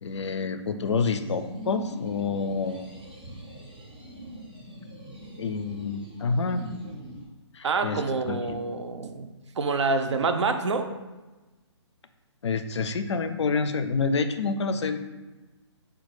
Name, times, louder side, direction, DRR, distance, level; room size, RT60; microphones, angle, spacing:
voice 1, 0.0-2.8 5.4-6.7 7.5-8.6 12.4-15.0, left 4 dB, 70° left, 9 dB, 0.4 m, -28 dB
sound 1, 1.1-7.2, right 1 dB, 15° right, 0.4 m, -43 dB
voice 2, 7.6-9.3 9.6-10.9, right 4 dB, 70° right, 7 dB, 0.5 m, -27 dB
4.3 x 2.3 x 4.7 m, 1.2 s
hypercardioid pair, 180°, 15 cm